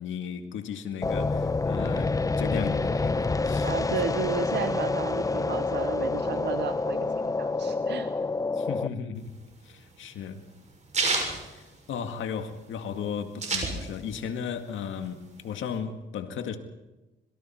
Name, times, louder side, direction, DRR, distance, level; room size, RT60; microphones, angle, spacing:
voice 1, 0.0-4.0 8.5-9.3 9.6-10.4 11.5-16.6, left 7 dB, 75° left, 2.0 m, -35 dB
sound 1, 1.0-8.9, left 3 dB, 15° left, 0.8 m, -27 dB
voice 2, 3.6-8.1, right 9 dB, 60° right, 0.9 m, -33 dB
sound 2, 9.2-12.4 12.7-12.8 13.0-14.3 14.6-15.7, right 3 dB, 35° right, 6.6 m, -30 dB
25.5 x 22.5 x 4.5 m
cardioid pair, 90°, 20 cm